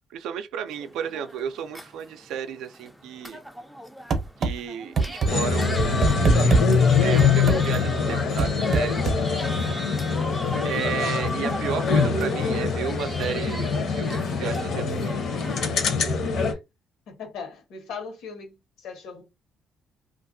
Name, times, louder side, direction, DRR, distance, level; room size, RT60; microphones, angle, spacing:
voice 1, 0.1-3.4 4.4-6.1 7.0-9.3 10.6-15.2, right 8 dB, 80° right, 0.4 m, -33 dB
sound 1, 0.7-15.8, equal, ahead, 0.3 m, -38 dB
sound 2, 4.1-4.5 5.0-5.3 5.8-6.6 7.2-7.6 8.4-9.2, right 4 dB, 40° right, 0.7 m, -22 dB
sound 3, 5.3-16.5, left 5 dB, 55° left, 0.7 m, -24 dB
voice 2, 9.4-10.1 10.4-10.8 16.4-16.6 17.1-19.2, left 5 dB, 80° left, 1.1 m, -40 dB
2.7 x 2.4 x 2.6 m
cardioid pair, 160°, 0 cm